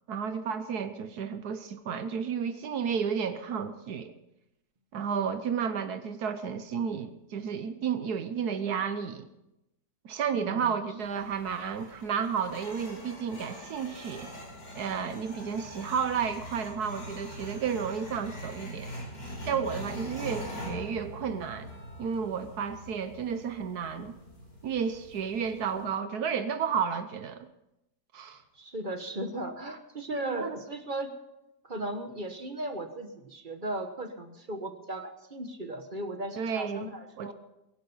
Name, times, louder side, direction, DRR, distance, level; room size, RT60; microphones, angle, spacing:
voice 1, 0.1-4.1 4.9-9.2 10.0-14.3 14.7-19.0 19.4-21.7 22.0-24.2 24.6-27.5 28.1-28.4 30.2-30.6 36.4-36.9 37.2-37.3, right 7 dB, 70° right, 10 dB, 1.4 m, -32 dB
voice 2, 10.3-10.7 25.7-25.9 28.5-31.1 31.6-37.3, right 1 dB, 35° right, 7 dB, 1.3 m, -36 dB
sound 1, 11.0-25.8, equal, 90° left, 5.7 m, -43 dB
21.5 x 11.5 x 5.5 m, 0.92 s
omnidirectional pair, 1.7 m